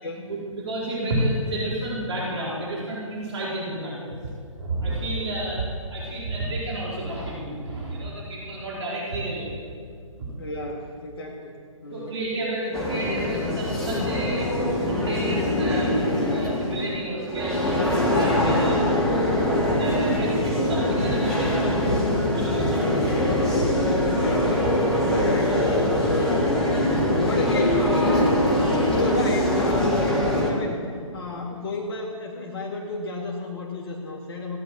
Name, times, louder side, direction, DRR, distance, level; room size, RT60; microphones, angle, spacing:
voice 1, 0.3-4.2 4.6-5.6 5.9-9.6 10.2-10.3 11.8-14.5 14.8-15.9 16.3-17.7 18.1-18.8 19.7-22.9, right 1 dB, 55° right, -5 dB, 4.3 m, -31 dB
voice 2, 10.4-11.5 11.8-12.1 18.1-18.8 19.3-19.6 19.9-20.1 24.2-24.6 25.0-26.9 27.2-28.4 28.8-29.9 30.5-34.6, left 2 dB, 45° left, -1 dB, 2.0 m, -32 dB
sound 1, 12.7-30.5, left 1 dB, 5° left, 2.1 m, -23 dB
17.5 x 9.8 x 7.8 m, 2.2 s
figure-of-eight pair, 135°, 17 cm